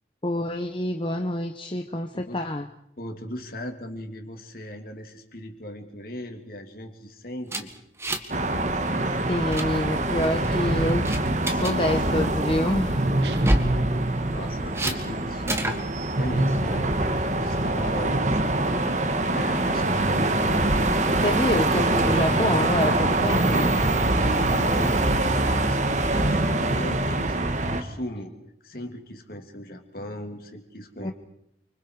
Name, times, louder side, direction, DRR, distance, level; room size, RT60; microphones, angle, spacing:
voice 1, 0.2-2.7 9.3-11.1 11.5-13.1 21.2-23.7 31.0-31.1, left 1 dB, 25° left, 5 dB, 1.0 m, -27 dB
voice 2, 2.1-2.4 3.0-7.7 14.3-15.9 16.2-21.4 23.4-23.5 23.7-28.3 28.6-31.1, equal, 50° left, 4 dB, 3.1 m, -37 dB
sound 1, 7.5-8.4 8.7-8.9 9.2-9.7 10.2-10.6 11.1-11.7 13.3-13.8 14.7-15.0 15.5-15.8, right 1 dB, 15° right, 1.7 m, -27 dB
sound 2, 8.3-27.8, right 2 dB, 40° right, 1.6 m, -24 dB
sound 3, 13.2-14.9, right 2 dB, 70° right, 1.5 m, -30 dB
29.5 x 25.5 x 4.9 m, 0.76 s
head